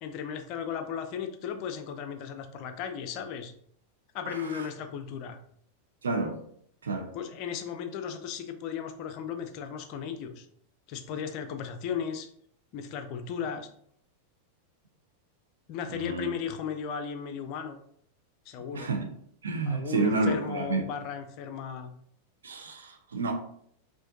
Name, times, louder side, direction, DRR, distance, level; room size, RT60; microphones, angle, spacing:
voice 1, 0.0-3.5 4.1-5.4 7.1-10.5 10.9-12.3 12.7-13.7 15.7-17.8 18.5-18.9 19.7-21.9, left 7 dB, 40° left, 7 dB, 0.5 m, -36 dB
voice 2, 4.3-4.6 6.0-6.4 6.8-7.1 15.9-16.3 18.7-19.1 19.4-20.8 22.4-23.3, right 3 dB, 70° right, 3 dB, 0.7 m, -30 dB
5.6 x 2.6 x 2.5 m, 0.65 s
figure-of-eight pair, 90°, 0 cm